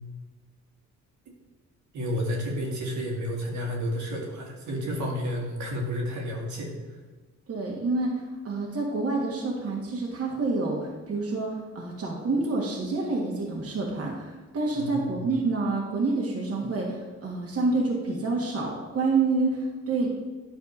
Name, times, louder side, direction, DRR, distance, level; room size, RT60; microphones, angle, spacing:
voice 1, 1.9-7.0 14.7-15.2, equal, 75° right, -1 dB, 2.0 m, -31 dB
voice 2, 7.5-20.1, right 3 dB, 50° right, -2 dB, 1.6 m, -28 dB
9.7 x 3.4 x 6.6 m, 1.3 s
cardioid pair, 90°, 30 cm